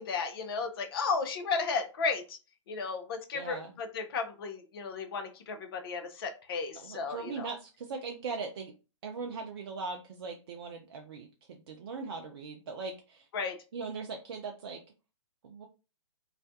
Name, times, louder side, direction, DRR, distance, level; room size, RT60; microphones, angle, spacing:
voice 1, 0.0-2.4 2.7-7.5 13.3-13.6, left 4 dB, 50° left, 6 dB, 0.6 m, -34 dB
voice 2, 3.3-3.7 6.8-8.7 9.0-13.3 13.7-14.8 15.4-15.7, right 4 dB, 50° right, 3 dB, 0.4 m, -40 dB
2.4 x 2.1 x 2.6 m, 0.32 s
figure-of-eight pair, 120°, 16 cm